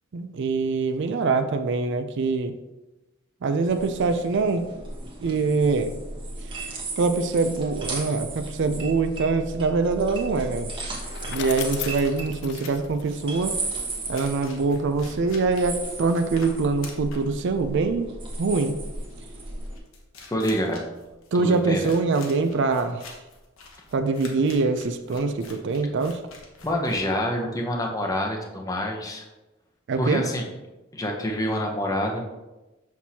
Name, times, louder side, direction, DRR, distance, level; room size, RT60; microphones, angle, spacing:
voice 1, 0.1-2.6 3.4-4.7 5.2-5.9 6.6-10.7 11.3-13.6 14.1-18.1 18.4-18.8 21.3-23.1 23.9-26.2 29.9-30.3, right 4 dB, 60° right, 9 dB, 0.4 m, -24 dB
sound 1, 3.6-19.8, right 2 dB, 25° right, 1.1 m, -36 dB
sound 2, 10.2-27.5, left 4 dB, 75° left, 1.0 m, -47 dB
Bicycle, 10.7-13.9, left 10 dB, 55° left, 0.4 m, -38 dB
voice 2, 20.3-20.9 21.4-21.9 26.6-29.3 30.0-30.5 30.9-32.2, equal, 15° left, 1 dB, 0.7 m, -27 dB
6.2 x 5.9 x 2.8 m, 1.1 s
head